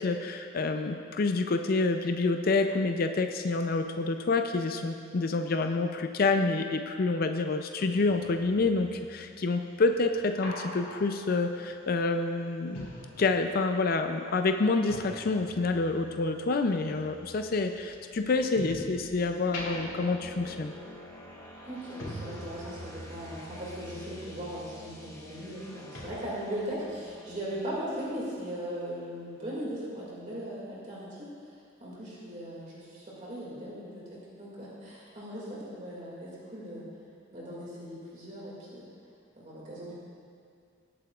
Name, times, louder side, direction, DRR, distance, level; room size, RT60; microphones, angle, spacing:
voice 1, 0.0-12.9 13.2-20.7, left 3 dB, 50° left, 6 dB, 0.4 m, -28 dB
sound 1, 7.9-13.9 14.1-19.0 19.4-25.7 25.9-26.1, left 1 dB, 85° left, 2.7 m, -45 dB
sound 2, 17.9-29.6, left 1 dB, 15° left, 1.0 m, -50 dB
voice 2, 21.6-31.3 31.8-36.8 37.3-38.8 39.4-39.9, equal, 40° right, -6 dB, 2.2 m, -38 dB
20.0 x 8.4 x 2.4 m, 2.3 s
head